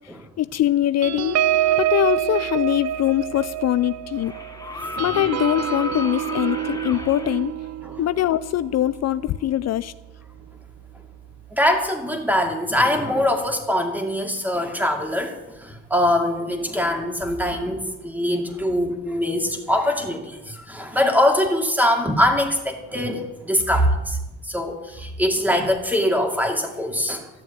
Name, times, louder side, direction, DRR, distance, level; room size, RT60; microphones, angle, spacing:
voice 1, 0.4-1.4 1.8-4.3 5.0-7.6 8.0-9.9, left 13 dB, 60° left, 15 dB, 0.5 m, -22 dB
sound 1, 1.0-9.9 10.4-10.6 10.9-11.2, right 12 dB, 60° right, 0.6 m, -27 dB
sound 2, 3.0-3.1 4.2-7.4 9.1-9.2, left 2 dB, 10° left, 2.2 m, -33 dB
voice 2, 11.5-24.2 24.5-27.3, left 1 dB, 5° right, 4 dB, 2.4 m, -22 dB
13.5 x 7.1 x 9.2 m, 1.0 s
cardioid pair, 90°, 30 cm